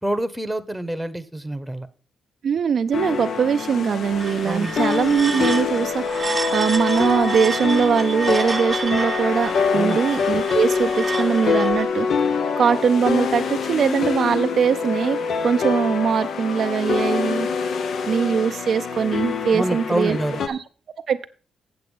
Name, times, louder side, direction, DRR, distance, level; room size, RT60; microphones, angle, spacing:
voice 1, 0.0-1.9 4.4-4.8 9.7-10.0 19.5-20.4, right 1 dB, 5° right, 11 dB, 1.0 m, -26 dB
voice 2, 2.4-15.2 15.4-17.5 18.1-20.2 20.5-20.6 21.1-21.3, right 7 dB, 65° right, 9 dB, 0.5 m, -21 dB
sound 1, 2.9-20.5, left 5 dB, 70° left, 0.8 m, -25 dB
sound 2, 4.0-11.9, right 4 dB, 35° right, 0.7 m, -31 dB
7.9 x 7.5 x 5.4 m, 0.39 s
cardioid pair, 75°, 0 cm